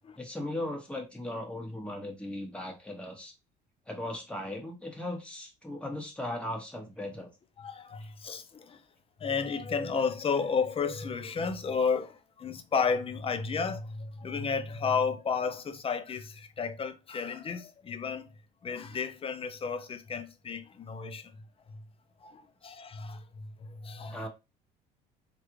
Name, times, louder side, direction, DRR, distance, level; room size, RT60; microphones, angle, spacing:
voice 1, 0.1-3.3 3.9-7.3 24.1-24.3, left 1 dB, 5° left, 1.3 m, -37 dB
voice 2, 7.6-8.8 9.2-18.3 18.6-21.3 21.7-21.8 22.2-24.3, left 5 dB, 30° left, 0.6 m, -32 dB
3.2 x 2.5 x 3.0 m
supercardioid pair, 80°, 20 cm